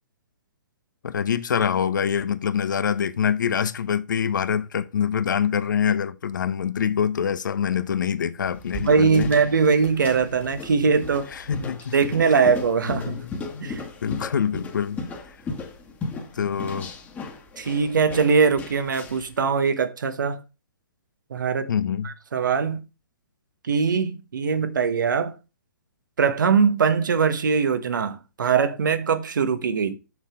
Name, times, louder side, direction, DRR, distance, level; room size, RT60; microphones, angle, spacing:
voice 1, 1.0-9.3 11.3-12.0 12.8-15.0 16.3-16.9 21.7-22.1, left 7 dB, 70° left, 0.9 m, -25 dB
sound 1, 8.4-19.3, left 3 dB, 15° left, 1.5 m, -37 dB
voice 2, 8.8-11.3 11.6-11.7 11.9-13.2 13.6-13.8 17.6-20.4 21.3-21.7 22.0-22.8 23.7-25.3 26.2-30.0, right 5 dB, 75° right, 1.2 m, -21 dB
6.4 x 5.7 x 4.9 m
hypercardioid pair, 135°, 10 cm